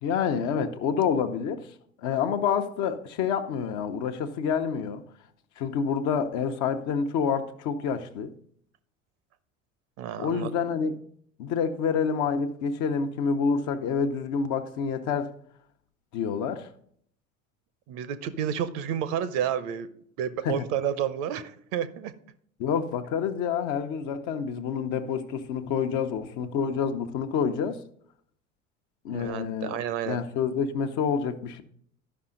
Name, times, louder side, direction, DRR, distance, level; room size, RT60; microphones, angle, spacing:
voice 1, 0.0-1.7 2.0-5.0 5.6-8.3 10.2-10.9 11.4-15.3 16.1-16.7 20.4-20.6 22.6-27.8 29.0-29.8 30.1-31.6, left 6 dB, 50° left, 1.0 m, -28 dB
voice 2, 10.0-10.5 17.9-19.9 20.2-22.1 29.1-30.2, right 9 dB, 50° right, 0.9 m, -30 dB
12.5 x 5.6 x 3.9 m
figure-of-eight pair, 75°, 39 cm